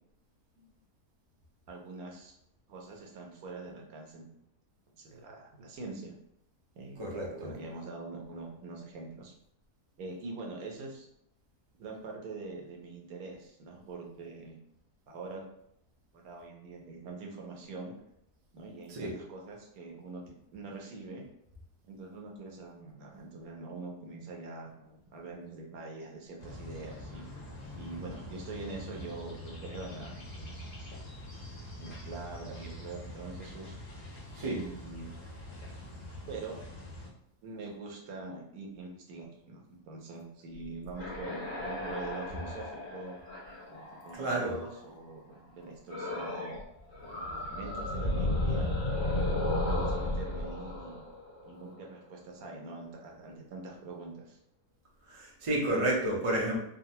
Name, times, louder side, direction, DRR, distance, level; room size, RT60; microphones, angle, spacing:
voice 1, 1.7-2.3 2.7-4.2 4.9-6.1 6.8-9.3 10.0-11.1 11.8-14.6 15.1-15.4 16.1-17.9 18.5-20.2 20.5-21.2 21.9-27.2 27.7-30.7 31.8-33.8 34.4-35.1 36.3-36.6 37.4-43.1 43.7-46.6 47.1-49.2 49.6-51.0 51.5-54.4, right 3 dB, 70° right, 0 dB, 1.1 m, -44 dB
voice 2, 7.0-7.5 18.9-19.1 34.3-34.6 44.1-44.6 55.1-56.6, right 1 dB, 55° right, -3 dB, 0.3 m, -31 dB
sound 1, 26.4-37.1, left 1 dB, 80° left, 1.5 m, -45 dB
sound 2, 40.6-44.8 45.9-46.6 46.9-51.8, left 1 dB, 35° left, 0.7 m, -34 dB
3.8 x 2.0 x 2.7 m, 0.75 s
omnidirectional pair, 1.7 m